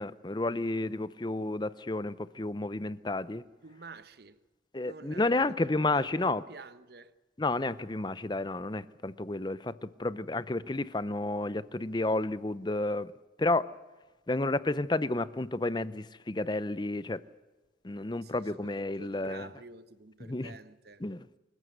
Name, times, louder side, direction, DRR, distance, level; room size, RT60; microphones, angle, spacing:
voice 1, 0.0-3.4 4.7-6.4 7.4-13.1 13.4-13.7 14.3-17.2 17.8-19.5 20.2-20.6 21.0-21.3, left 2 dB, 25° left, 0.6 m, -31 dB
voice 2, 3.6-4.4 4.8-5.5 5.9-7.1 18.2-18.7 19.0-21.0, right 3 dB, 55° right, 0.9 m, -49 dB
25.5 x 15.0 x 7.9 m
head